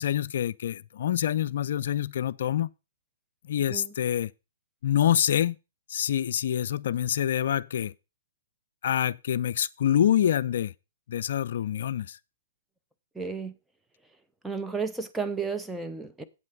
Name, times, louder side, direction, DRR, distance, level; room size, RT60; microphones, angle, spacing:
voice 1, 0.0-2.7 3.5-4.3 4.8-5.6 5.9-7.9 8.8-10.7 11.1-12.2, left 10 dB, 60° left, 0.4 m, -26 dB
voice 2, 13.1-13.6 14.4-16.2, right 5 dB, 5° right, 0.9 m, -32 dB
8.5 x 7.5 x 5.2 m
figure-of-eight pair, 115°, 0 cm